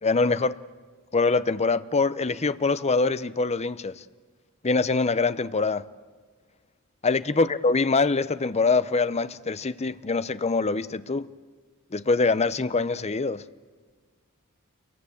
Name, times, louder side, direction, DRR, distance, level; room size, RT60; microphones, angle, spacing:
voice 1, 0.0-0.6 1.1-3.9 4.6-5.8 7.0-11.3 11.9-13.4, left 3 dB, 30° left, 0.7 m, -24 dB
28.5 x 23.0 x 8.6 m
head